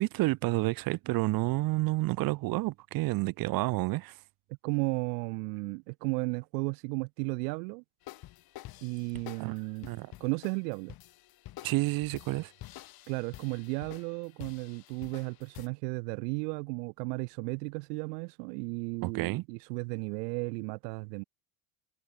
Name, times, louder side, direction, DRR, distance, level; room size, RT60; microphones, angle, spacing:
voice 1, 0.0-4.2 9.4-9.6 9.9-10.1 11.6-12.5 19.0-19.4, right 20 dB, 45° right, 0.7 m, -29 dB
voice 2, 4.6-7.8 8.8-9.9 10.2-10.9 13.1-21.2, right 32 dB, 80° right, 1.5 m, -34 dB
sound 1, 8.0-15.7, left 15 dB, 45° left, 3.1 m, -49 dB
supercardioid pair, 135°, 49 cm